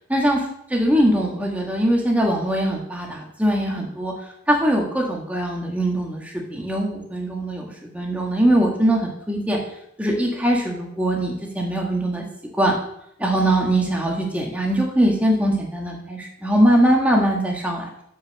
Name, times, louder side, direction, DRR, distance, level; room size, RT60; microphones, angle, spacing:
voice 1, 0.1-0.4 0.7-4.1 4.5-7.7 7.9-9.6 10.0-12.2 12.6-12.7 13.2-17.9, right 1 dB, 5° right, -1 dB, 1.7 m, -21 dB
7.1 x 6.4 x 6.6 m, 0.74 s
head